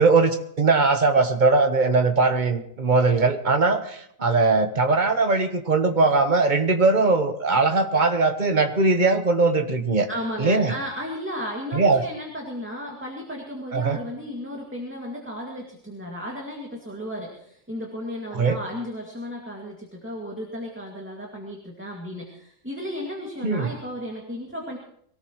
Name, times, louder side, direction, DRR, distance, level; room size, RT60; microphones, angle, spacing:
voice 1, 0.0-10.1 10.4-10.7 11.7-12.0 13.7-14.0 18.3-18.6 23.4-23.7, right 3 dB, 35° right, 7 dB, 1.2 m, -20 dB
voice 2, 10.1-24.8, equal, 10° right, -1 dB, 2.2 m, -34 dB
23.0 x 18.0 x 3.1 m, 0.68 s
omnidirectional pair, 1.4 m